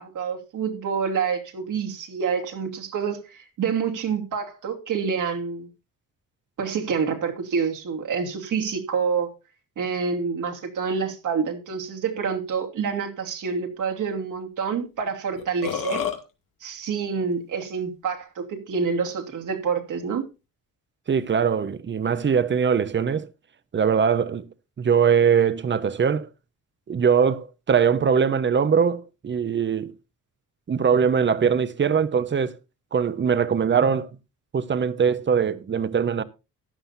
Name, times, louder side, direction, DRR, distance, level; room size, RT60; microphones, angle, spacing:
voice 1, 0.0-5.7 6.6-9.3 9.8-16.0 16.6-20.3, right 6 dB, 65° right, 2.7 m, -27 dB
Burping eructation, 15.0-15.1 15.4-16.2, left 8 dB, 75° left, 2.3 m, -28 dB
voice 2, 21.1-23.3 23.7-24.5 24.8-26.3 26.9-29.9 30.7-32.6 32.9-34.1 34.5-36.2, right 7 dB, 35° right, 1.0 m, -21 dB
15.0 x 11.5 x 2.7 m
cardioid pair, 115°, 33 cm